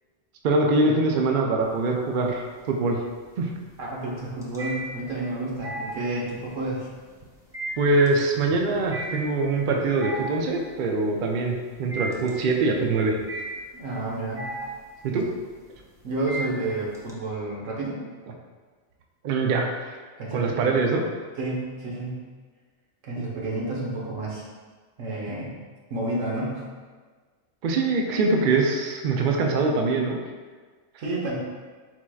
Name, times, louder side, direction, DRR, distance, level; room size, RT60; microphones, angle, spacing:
voice 1, 0.4-3.0 3.4-3.5 7.8-13.2 15.0-15.2 19.2-19.7 20.3-21.0 27.6-30.2, right 3 dB, 60° right, 1 dB, 0.5 m, -23 dB
sound 1, 1.6-2.3 2.6-17.1, right 1 dB, 5° right, 0.3 m, -36 dB
voice 2, 3.8-6.9 13.7-14.5 15.1-15.2 16.0-18.0 20.2-20.7 21.4-22.3 23.0-24.4 25.0-25.5 25.9-26.8 31.0-31.4, right 2 dB, 85° right, -4 dB, 1.4 m, -30 dB
4.4 x 4.3 x 2.3 m, 1.4 s
omnidirectional pair, 1.3 m